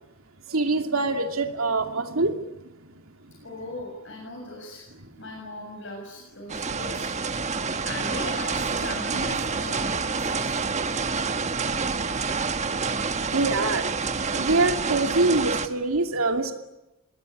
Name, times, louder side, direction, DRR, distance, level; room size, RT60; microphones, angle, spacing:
voice 1, 0.5-2.5 2.9-3.0 5.0-5.1 10.9-11.0 12.7-12.8 13.2-16.5, right 2 dB, 90° right, 5 dB, 2.6 m, -25 dB
voice 2, 3.4-4.9 5.2-7.1 7.8-10.7, left 2 dB, 65° left, 0 dB, 6.5 m, -38 dB
sound 1, 6.5-15.7, right 4 dB, 35° right, 1.3 m, -28 dB
27.5 x 20.5 x 10.0 m, 0.98 s
head